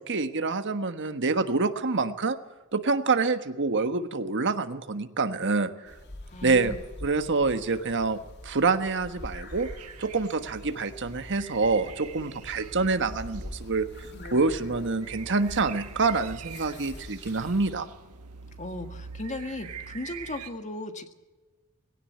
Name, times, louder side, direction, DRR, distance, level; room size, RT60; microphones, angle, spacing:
voice 1, 0.1-2.4 2.7-5.9 6.4-6.7 7.0-9.7 10.0-13.9 14.3-17.9, right 4 dB, 55° right, 9 dB, 1.4 m, -26 dB
sound 1, 5.9-17.7, left 1 dB, 50° left, 3.0 m, -45 dB
voice 2, 6.3-6.8 18.6-21.1, left 2 dB, 35° left, 7 dB, 1.7 m, -36 dB
sound 2, 9.5-20.5, right 6 dB, 90° right, 1.6 m, -44 dB
19.5 x 17.0 x 9.4 m, 1.2 s
head